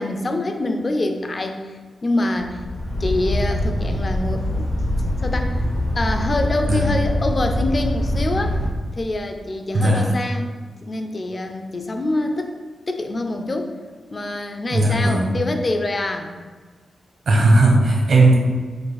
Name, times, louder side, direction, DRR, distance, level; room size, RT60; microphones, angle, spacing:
voice 1, 0.0-2.6 3.0-4.7 5.2-5.7 6.0-8.6 8.9-10.5 10.8-12.6 12.9-13.8 14.1-16.3, left 2 dB, 30° left, 5 dB, 0.4 m, -25 dB
sound 1, 2.4-8.7, left 1 dB, 90° left, 1.1 m, -23 dB
voice 2, 9.7-10.1 14.7-15.3 17.3-18.3, right 2 dB, 60° right, 0 dB, 0.9 m, -16 dB
5.0 x 2.4 x 3.9 m, 1.5 s
wide cardioid pair, 155°, 0 cm